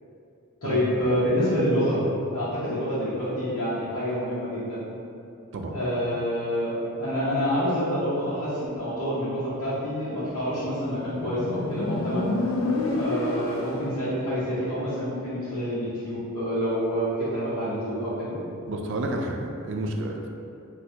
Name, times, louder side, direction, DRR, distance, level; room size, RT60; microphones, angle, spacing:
voice 1, 0.6-2.0 2.3-4.8 5.7-6.7 7.0-12.3 12.9-18.4, equal, 80° left, -12 dB, 0.9 m, -27 dB
Motorcycle, 10.6-14.1, left 2 dB, 65° left, 0.4 m, -29 dB
voice 2, 18.7-20.3, right 1 dB, 55° right, 2 dB, 0.3 m, -30 dB
4.2 x 2.2 x 2.7 m, 2.6 s
head